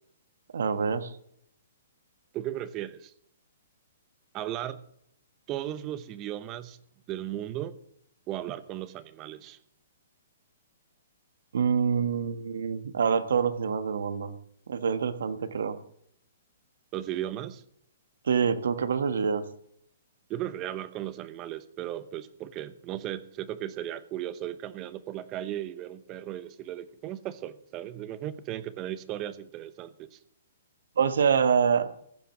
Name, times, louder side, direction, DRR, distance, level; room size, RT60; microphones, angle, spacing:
voice 1, 0.5-1.1 11.5-14.3 14.7-15.8 18.2-19.5 31.0-31.9, right 6 dB, 75° right, 1.3 m, -26 dB
voice 2, 2.3-3.1 4.3-4.8 5.5-6.8 7.1-7.8 8.3-9.6 16.9-17.6 20.3-30.2, right 12 dB, 25° right, 0.8 m, -36 dB
15.0 x 7.6 x 7.2 m
hypercardioid pair, 155°, 0 cm